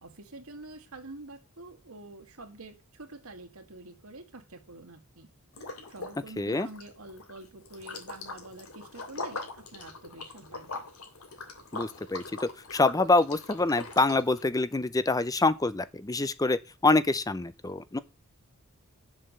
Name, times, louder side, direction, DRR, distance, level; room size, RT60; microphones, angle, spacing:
voice 1, 0.0-5.3 5.9-10.8, right 2 dB, 75° right, 2.0 m, -47 dB
Liquid, 5.5-6.2 6.5-14.4, left 3 dB, 75° left, 2.9 m, -41 dB
voice 2, 6.4-6.7 11.7-18.0, left 3 dB, 15° left, 0.6 m, -26 dB
8.4 x 7.5 x 6.5 m
head